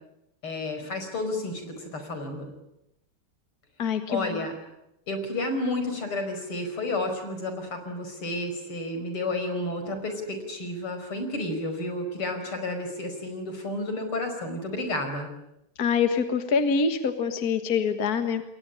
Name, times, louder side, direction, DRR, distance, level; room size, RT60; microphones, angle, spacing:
voice 1, 0.4-2.5 4.1-4.5 5.1-15.3, left 2 dB, 75° left, 6 dB, 5.8 m, -31 dB
voice 2, 3.8-4.4 15.8-18.4, left 5 dB, 45° left, 8 dB, 1.9 m, -25 dB
29.0 x 22.0 x 8.7 m, 0.83 s
omnidirectional pair, 2.4 m